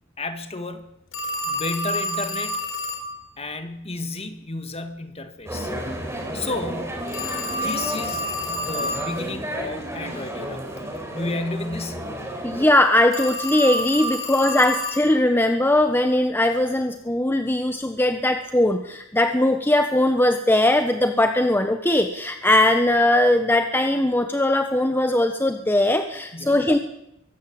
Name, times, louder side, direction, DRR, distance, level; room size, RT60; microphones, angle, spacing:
voice 1, 0.2-0.9 1.4-2.6 3.4-5.7 6.3-7.0 7.5-12.1 26.3-26.8, left 2 dB, 30° left, 8 dB, 2.0 m, -32 dB
Telephone, 1.1-3.1 7.1-9.1 13.1-15.1, left 1 dB, 75° left, 4.4 m, -29 dB
sound 1, 5.5-12.7, right 1 dB, 15° right, 4.5 m, -32 dB
voice 2, 12.4-26.8, left 1 dB, 10° left, 6 dB, 1.2 m, -20 dB
23.5 x 13.5 x 8.8 m, 0.82 s
head